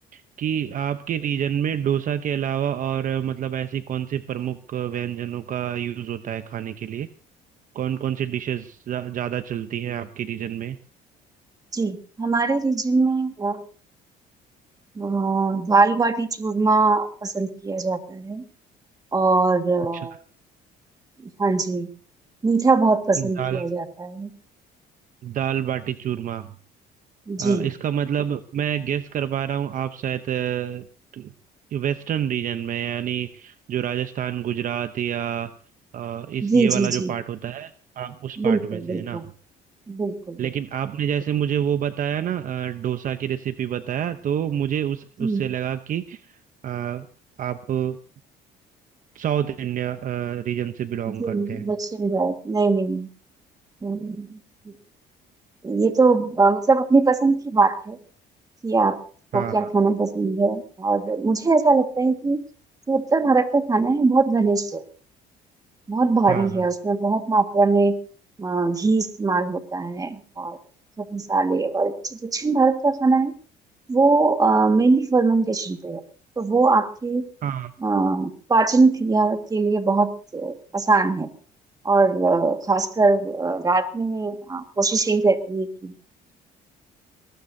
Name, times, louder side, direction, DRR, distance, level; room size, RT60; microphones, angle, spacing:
voice 1, 0.1-7.1 7.7-10.8 19.9-20.1 23.2-23.7 25.2-26.5 27.4-30.8 31.1-31.3 31.7-35.5 35.9-39.2 40.4-46.3 46.6-47.1 47.4-48.0 49.1-51.7 59.3-59.7 66.3-66.6 77.4-77.7, right 9 dB, 50° right, 10 dB, 0.8 m, -28 dB
voice 2, 11.7-13.6 15.0-18.4 19.1-20.1 21.4-21.9 22.4-24.3 27.3-27.7 36.4-37.1 38.4-39.2 39.9-40.4 45.2-45.4 51.1-53.1 53.8-54.4 55.6-58.0 58.6-59.0 59.3-62.4 62.9-64.8 65.9-68.0 68.4-70.6 71.0-73.3 73.9-76.0 76.4-77.2 77.8-81.3 81.9-85.9, right 3 dB, 20° right, 7 dB, 1.8 m, -21 dB
22.0 x 19.0 x 2.8 m, 0.41 s
cardioid pair, 110°, 17 cm